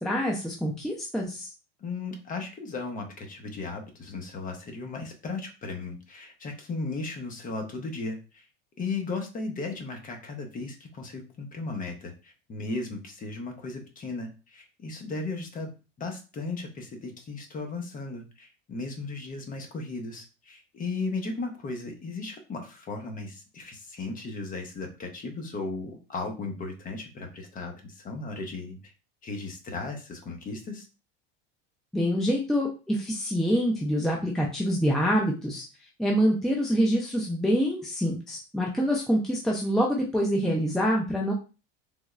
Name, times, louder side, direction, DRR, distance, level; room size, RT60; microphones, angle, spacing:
voice 1, 0.0-1.5 31.9-35.6 36.0-41.3, equal, ahead, -2 dB, 0.5 m, -26 dB
voice 2, 1.8-8.5 8.8-15.7 16.0-28.9 29.2-30.9, left 3 dB, 25° left, 3 dB, 0.8 m, -36 dB
3.5 x 2.3 x 3.1 m, 0.32 s
supercardioid pair, 130°, 30 cm